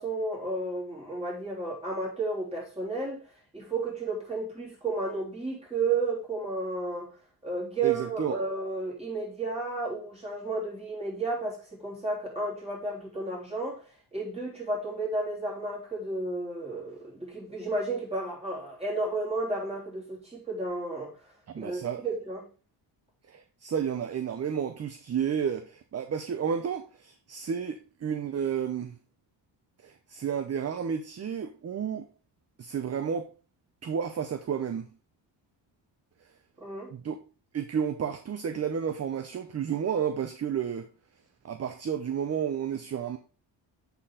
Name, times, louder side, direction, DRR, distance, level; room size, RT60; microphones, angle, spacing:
voice 1, 0.0-3.2 3.5-7.1 7.4-13.8 14.1-21.1 21.6-22.4 36.6-36.9, right 3 dB, 15° right, 3.6 m, -32 dB
voice 2, 7.8-8.4 21.5-22.0 23.3-29.0 29.8-32.1 32.6-33.3 33.8-34.9 36.9-37.2 37.5-40.9 41.4-43.2, right 7 dB, 35° right, 0.6 m, -31 dB
8.1 x 4.2 x 3.7 m
cardioid pair, 100°, 44 cm